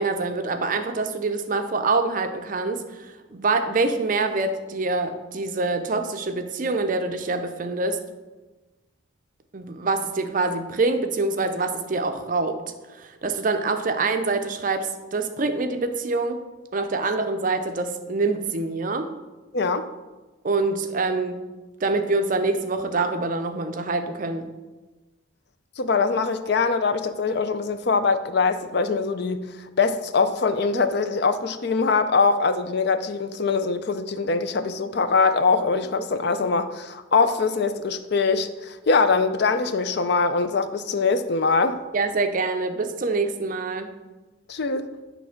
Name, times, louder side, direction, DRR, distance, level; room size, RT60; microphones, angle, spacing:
voice 1, 0.0-8.0 9.5-12.6 13.0-16.4 16.7-19.1 20.4-21.4 21.8-24.5 41.9-43.9, right 3 dB, 40° right, 0.5 m, -25 dB
voice 2, 19.5-19.9 25.8-29.5 29.8-41.8 44.5-44.9, left 4 dB, 55° left, 0.5 m, -23 dB
8.8 x 3.3 x 5.7 m
head